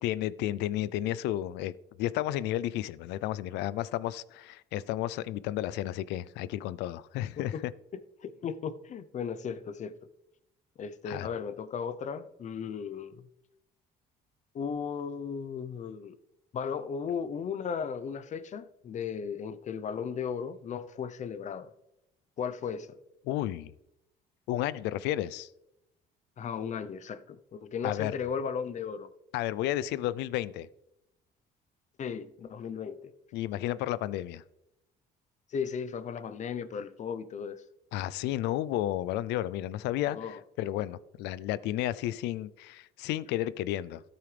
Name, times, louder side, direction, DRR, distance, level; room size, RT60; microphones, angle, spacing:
voice 1, 0.0-1.7 2.0-7.5 11.1-11.3 23.3-23.7 24.5-25.5 27.8-28.1 29.3-30.7 33.3-34.4 37.9-44.0, left 14 dB, 90° left, 0.5 m, -32 dB
voice 2, 8.2-10.0 10.8-13.3 14.5-16.2 16.5-21.7 22.4-23.0 26.4-29.1 32.0-33.1 35.5-37.6 40.1-40.4, left 6 dB, 45° left, 0.8 m, -36 dB
13.5 x 8.8 x 3.4 m
cardioid pair, 110°, 17 cm